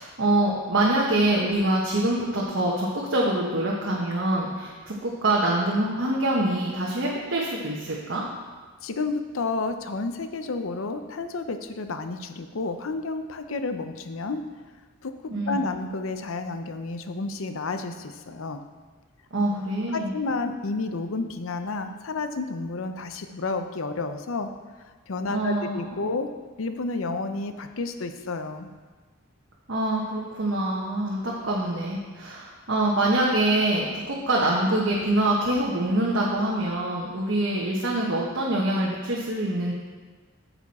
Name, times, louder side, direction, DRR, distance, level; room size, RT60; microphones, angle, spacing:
voice 1, 0.0-8.2 15.3-15.6 19.3-20.1 25.3-25.8 29.7-39.7, right 1 dB, 60° right, -4 dB, 1.1 m, -25 dB
voice 2, 8.8-14.5 15.0-15.2 15.5-18.6 19.9-24.5 25.1-26.3 26.6-28.7, left 3 dB, 75° left, 8 dB, 0.6 m, -31 dB
8.8 x 6.9 x 4.2 m, 1.4 s
head